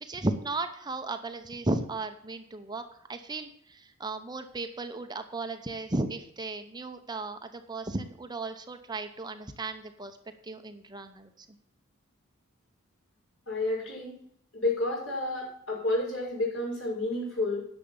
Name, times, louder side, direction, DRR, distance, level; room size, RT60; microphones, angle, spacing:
voice 1, 0.0-2.8 3.1-10.2 10.4-11.3, right 2 dB, 20° right, 7 dB, 0.8 m, -35 dB
voice 2, 13.5-14.2 14.5-17.7, left 2 dB, 70° left, -4 dB, 5.9 m, -30 dB
11.0 x 6.5 x 7.2 m, 0.69 s
head